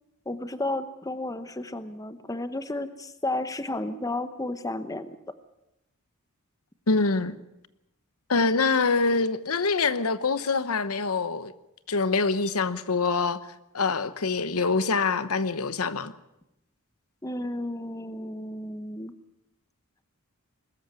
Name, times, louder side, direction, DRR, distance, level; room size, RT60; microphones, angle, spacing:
voice 1, 0.3-5.2 17.2-19.1, left 2 dB, 15° left, 0.9 m, -32 dB
voice 2, 6.9-7.4 8.3-11.5 11.9-13.4 13.7-16.1, left 4 dB, 75° left, 1.0 m, -25 dB
21.5 x 13.5 x 9.1 m
head